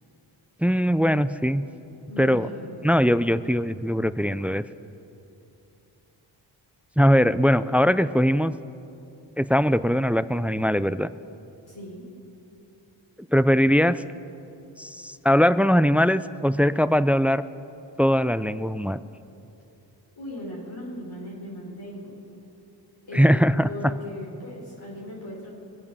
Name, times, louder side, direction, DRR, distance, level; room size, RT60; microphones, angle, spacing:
voice 1, 0.6-1.6 2.2-2.5 2.8-4.6 7.0-8.5 9.4-11.1 13.3-14.0 14.8-17.4 18.0-19.0 23.1-23.7, equal, 5° right, 15 dB, 0.4 m, -21 dB
voice 2, 2.1-2.7 11.7-12.1 20.2-22.2 23.0-25.5, left 1 dB, 50° left, -4 dB, 4.6 m, -38 dB
23.0 x 8.4 x 6.9 m, 2.8 s
cardioid pair, 50°, 47 cm